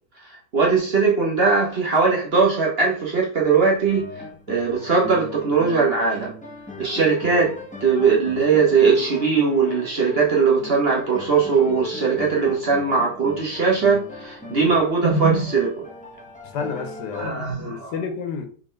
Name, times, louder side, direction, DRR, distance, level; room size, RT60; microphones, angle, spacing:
voice 1, 0.5-4.1 4.5-6.3 6.8-7.5 7.8-15.8 17.1-17.9, right 5 dB, 40° right, 1.1 m, -20 dB
sound 1, 3.6-17.3, left 1 dB, 10° left, 0.4 m, -37 dB
voice 2, 16.4-18.5, left 6 dB, 80° left, 1.5 m, -31 dB
4.1 x 3.8 x 3.2 m
omnidirectional pair, 1.8 m